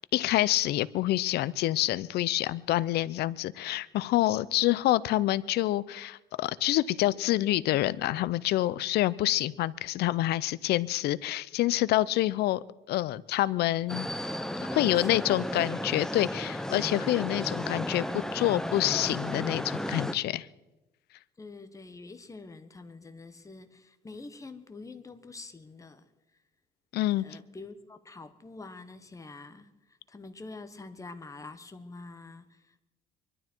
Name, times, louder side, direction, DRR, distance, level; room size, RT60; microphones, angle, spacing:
voice 1, 0.1-14.1 14.7-18.1 18.3-20.5 26.9-27.2, left 15 dB, 75° left, 0.6 m, -27 dB
sound 1, 13.9-20.1, left 1 dB, 5° left, 0.8 m, -34 dB
voice 2, 14.6-15.5 21.4-26.1 27.2-32.8, left 3 dB, 20° left, 1.3 m, -46 dB
23.5 x 12.0 x 4.6 m
cardioid pair, 110°, 17 cm